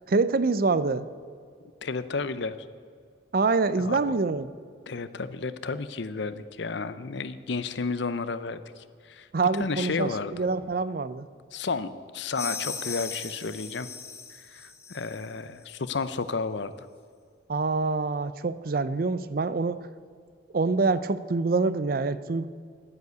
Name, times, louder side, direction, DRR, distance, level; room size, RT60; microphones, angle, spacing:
voice 1, 0.1-1.1 3.3-4.5 9.3-11.3 17.5-19.8 20.5-22.5, right 3 dB, 45° right, 15 dB, 0.5 m, -25 dB
voice 2, 1.8-2.6 3.7-4.2 4.9-9.3 9.5-10.5 11.5-13.9 14.4-16.9, left 4 dB, 60° left, 14 dB, 0.6 m, -32 dB
sound 1, 12.3-15.3, left 5 dB, 15° left, 1.0 m, -38 dB
11.0 x 9.6 x 8.1 m, 2.1 s
head